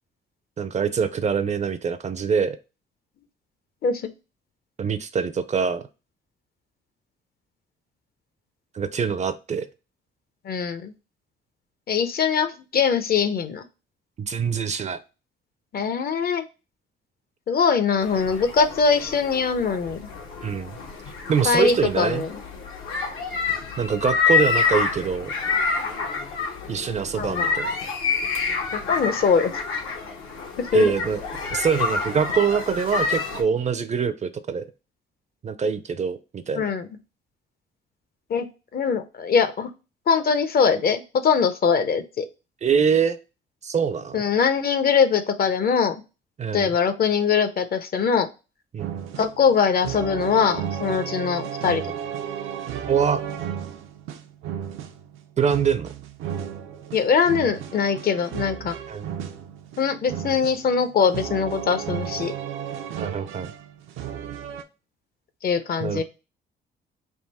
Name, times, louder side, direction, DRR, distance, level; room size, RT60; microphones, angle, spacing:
voice 1, 0.6-2.6 4.8-5.9 8.7-9.7 14.2-15.0 20.4-20.8 21.3-22.2 23.8-25.3 26.7-27.7 30.7-31.2 31.5-34.7 35.4-36.7 42.6-43.2 43.6-44.2 46.4-46.7 48.7-49.0 52.9-53.2 55.4-55.9 58.9-59.1 63.0-63.5 65.8-66.0, right 6 dB, 35° right, 12 dB, 0.4 m, -24 dB
voice 2, 10.4-10.9 11.9-13.6 15.7-16.4 17.5-20.1 21.4-22.3 27.1-27.5 28.7-29.5 30.6-30.9 36.5-36.9 38.3-38.5 38.7-39.7 40.1-42.3 44.1-46.0 46.5-48.3 49.2-51.8 56.9-58.8 59.8-62.3 65.4-66.0, left 6 dB, 50° left, 10 dB, 0.6 m, -22 dB
sound 1, 18.0-33.4, left 5 dB, 85° left, 1.2 m, -28 dB
sound 2, 48.8-64.6, right 9 dB, 90° right, 0.5 m, -33 dB
3.6 x 2.6 x 4.1 m, 0.30 s
cardioid pair, 90°, 20 cm